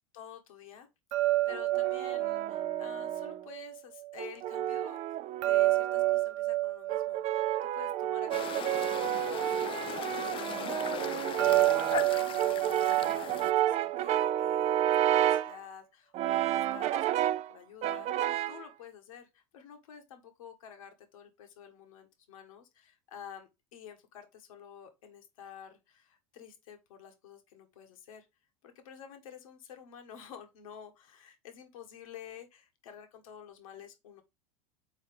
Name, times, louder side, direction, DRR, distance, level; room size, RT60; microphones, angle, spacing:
voice 1, 0.1-0.9 1.2-5.0 5.4-7.5 7.7-28.3 28.6-34.2, left 8 dB, 80° left, 1.4 m, -50 dB
sound 1, 1.1-4.2 5.4-8.9 11.4-14.5, right 16 dB, 70° right, 0.8 m, -30 dB
Brass instrument, 1.5-3.4 4.2-6.2 6.9-15.6 16.1-17.5 17.8-18.7, right 12 dB, 40° right, 0.5 m, -31 dB
sound 2, 8.3-13.5, left 11 dB, 30° left, 0.4 m, -39 dB
5.6 x 4.3 x 4.9 m
hypercardioid pair, 105°, 17 cm